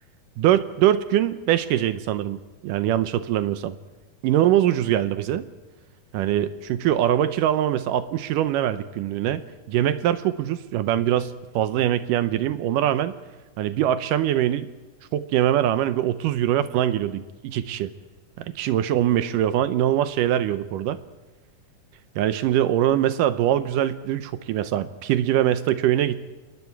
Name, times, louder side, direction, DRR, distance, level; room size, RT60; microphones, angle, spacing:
voice 1, 0.4-3.7 4.2-5.4 6.1-9.4 9.7-13.1 13.6-14.7 15.1-17.9 18.4-21.0 22.2-26.2, right 11 dB, 75° right, 12 dB, 2.1 m, -23 dB
27.0 x 20.5 x 4.7 m, 1.2 s
omnidirectional pair, 4.4 m